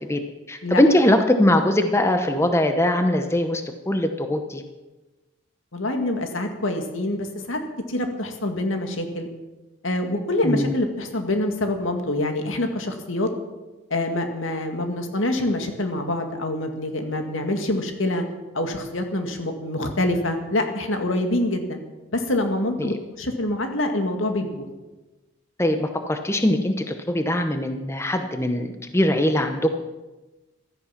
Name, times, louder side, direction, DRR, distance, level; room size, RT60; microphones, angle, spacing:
voice 1, 0.5-4.6 10.4-10.7 22.8-23.0 25.6-29.8, left 1 dB, 15° left, 7 dB, 0.9 m, -21 dB
voice 2, 5.7-7.6 7.9-9.3 9.8-13.3 13.9-18.2 18.5-21.8 22.1-24.7, left 1 dB, 80° left, 5 dB, 2.1 m, -25 dB
16.0 x 12.5 x 5.9 m, 1.1 s
head